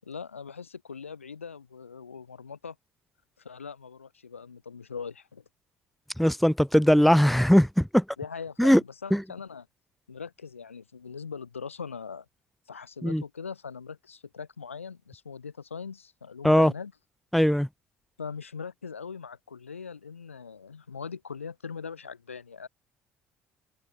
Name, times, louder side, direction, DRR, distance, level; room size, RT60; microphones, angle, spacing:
voice 1, 0.0-2.8 3.4-5.4 8.2-9.7 10.1-12.3 12.7-16.9 18.2-22.7, left 6 dB, 80° left, 7.7 m, -41 dB
voice 2, 6.2-8.0 8.6-8.8 9.1-9.2 13.0-13.2 16.4-16.7 17.3-17.7, equal, ahead, 2.0 m, -20 dB
figure-of-eight pair, 55°, 7 cm